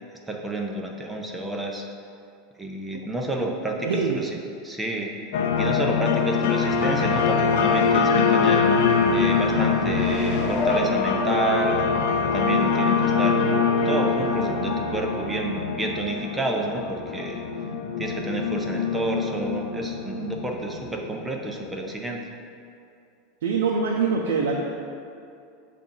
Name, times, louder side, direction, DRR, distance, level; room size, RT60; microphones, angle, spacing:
voice 1, 0.3-1.8 2.6-4.4 4.6-5.1 5.6-8.7 9.1-11.8 12.3-13.5 13.8-17.4 18.0-22.2, right 2 dB, 10° right, 1 dB, 0.7 m, -29 dB
voice 2, 3.8-4.2 23.4-24.6, right 5 dB, 85° right, -1 dB, 0.5 m, -23 dB
sound 1, 5.3-21.7, left 5 dB, 75° left, 0.5 m, -24 dB
sound 2, 9.9-11.9 12.4-12.5, left 1 dB, 50° left, 0.9 m, -30 dB
6.9 x 2.5 x 5.4 m, 2.5 s
supercardioid pair, 125°, 0 cm